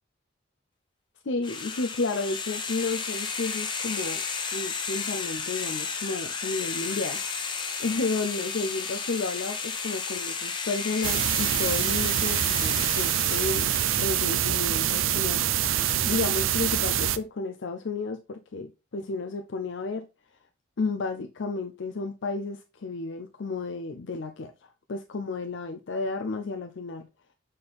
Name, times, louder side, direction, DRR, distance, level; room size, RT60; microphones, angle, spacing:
voice 1, 1.2-4.2 4.5-13.7 14.0-15.4 16.0-20.1 20.8-27.1, left 3 dB, 65° left, 0.5 m, -32 dB
sound 1, 1.4-14.5, left 5 dB, 25° left, 0.9 m, -33 dB
sound 2, 11.0-17.2, right 11 dB, 80° right, 0.5 m, -25 dB
6.8 x 4.2 x 3.4 m
head